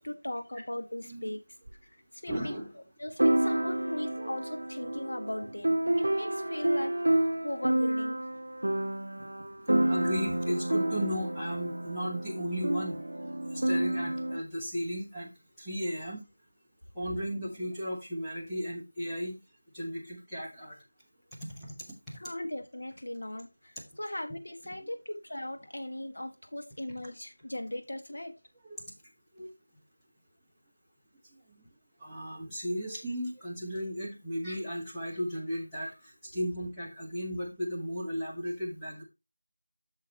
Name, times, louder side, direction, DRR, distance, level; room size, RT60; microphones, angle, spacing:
voice 1, 0.0-1.4 1.8-8.2 9.2-9.3 22.1-28.4, left 1 dB, 65° left, 1.8 m, -39 dB
sound 1, 1.7-1.8 3.2-14.4, right 1 dB, 65° right, 0.4 m, -29 dB
voice 2, 2.3-2.7 3.7-4.3 6.4-6.5 9.9-13.1 13.5-15.3 15.6-16.2 16.9-19.4 19.7-20.8 21.5-22.2 28.8-28.9 29.3-29.5 31.5-31.7 32.0-39.0, equal, ahead, 1.3 m, -35 dB
8.5 x 6.5 x 3.0 m
figure-of-eight pair, 175°, 0 cm